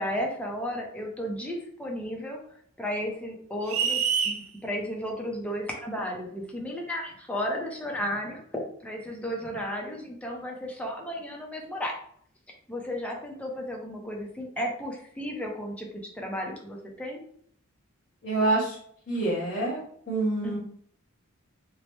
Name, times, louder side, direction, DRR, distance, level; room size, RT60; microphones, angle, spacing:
voice 1, 0.0-2.4 2.8-8.4 8.8-12.0 12.7-17.2 20.4-20.6, equal, 5° left, 0 dB, 0.5 m, -34 dB
sound 1, 3.7-4.4, right 6 dB, 70° right, 0.4 m, -25 dB
voice 2, 18.2-18.7 19.1-19.8 20.1-20.6, right 2 dB, 50° left, -10 dB, 1.1 m, -26 dB
3.0 x 2.0 x 3.0 m, 0.63 s
head